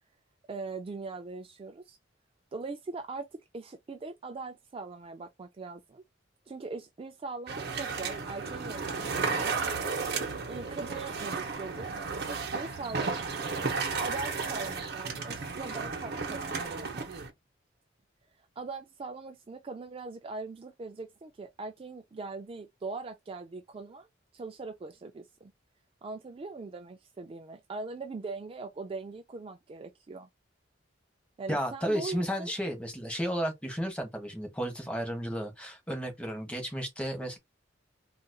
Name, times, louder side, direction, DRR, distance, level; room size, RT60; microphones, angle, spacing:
voice 1, 0.5-2.0 2.5-6.0 6.5-9.6 10.5-11.9 12.2-13.5 14.0-17.1 18.6-24.1 24.3-25.5 26.0-30.3 31.4-32.5, right 3 dB, 30° right, 0.3 m, -41 dB
sound 1, 7.5-17.3, right 4 dB, 55° right, 0.9 m, -33 dB
voice 2, 31.5-37.4, equal, 5° left, 1.1 m, -33 dB
4.0 x 2.5 x 2.2 m
head